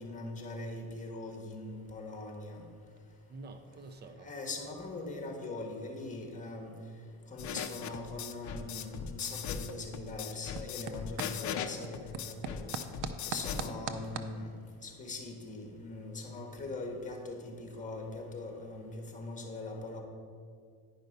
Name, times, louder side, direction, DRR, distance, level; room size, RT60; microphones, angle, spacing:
voice 1, 0.0-2.7 4.2-6.7 7.3-12.7 13.2-14.5 14.8-20.0, left 2 dB, 20° left, 2 dB, 1.6 m, -41 dB
sound 1, 1.7-14.3, right 7 dB, 90° right, 0.6 m, -47 dB
voice 2, 3.3-4.3 11.2-11.3 13.5-13.7 16.5-16.7, right 3 dB, 25° right, 8 dB, 0.6 m, -49 dB
sound 2, 7.4-13.7, left 8 dB, 50° left, 0.6 m, -39 dB
10.5 x 5.3 x 5.2 m, 2.1 s
cardioid pair, 125°, 38 cm